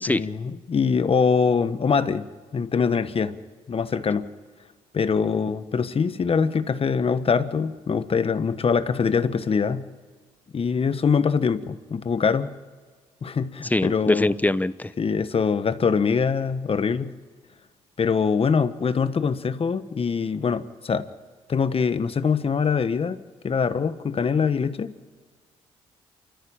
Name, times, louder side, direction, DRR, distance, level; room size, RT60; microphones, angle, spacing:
voice 1, 0.1-2.3 2.5-3.4 3.7-4.3 4.9-9.9 10.5-12.5 13.2-14.3 15.0-17.1 18.0-21.1 21.5-23.2 23.4-24.9, left 5 dB, 45° left, 12 dB, 1.4 m, -23 dB
voice 2, 13.7-14.9, left 2 dB, 10° left, 15 dB, 0.9 m, -23 dB
28.5 x 14.5 x 8.9 m, 1.5 s
supercardioid pair, 60°, 14 cm